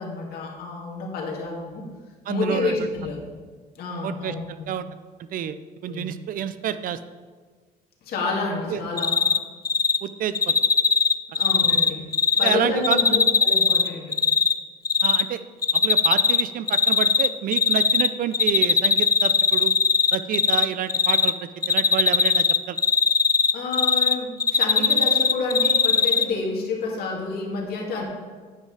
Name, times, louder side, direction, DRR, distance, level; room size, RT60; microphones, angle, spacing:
voice 1, 0.0-1.9 2.3-3.2 3.8-4.7 5.9-6.0 8.0-9.3 11.3-12.0 12.4-14.2 23.5-28.0, left 3 dB, 65° left, -1 dB, 2.2 m, -29 dB
voice 2, 2.3-2.7 4.0-4.9 5.3-5.6 5.8-7.0 8.7-8.8 10.0-10.6 12.4-13.2 15.0-15.4 15.7-19.7 20.1-21.3 21.7-22.8, right 10 dB, 55° right, 13 dB, 0.5 m, -28 dB
Cricket, 9.0-9.4 9.6-10.0 10.3-12.5 12.8-14.5 14.8-15.2 15.6-16.4 16.7-18.1 18.3-20.6 20.9-21.3 21.6-24.1 24.4-26.2, left 5 dB, 20° left, 0.4 m, -19 dB
9.4 x 5.6 x 4.8 m, 1.5 s
cardioid pair, 110°, 17 cm